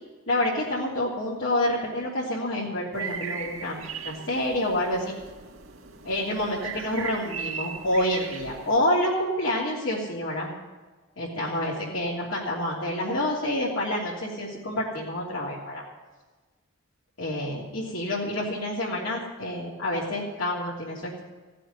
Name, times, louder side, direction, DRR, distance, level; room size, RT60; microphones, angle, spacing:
voice 1, 0.3-3.8 4.0-5.1 6.0-10.5 11.2-15.8 17.2-21.2, left 1 dB, 80° left, -8 dB, 3.2 m, -28 dB
sound 1, 2.9-8.8, right 6 dB, 85° right, 2.4 m, -38 dB
16.5 x 7.6 x 9.6 m, 1.3 s
head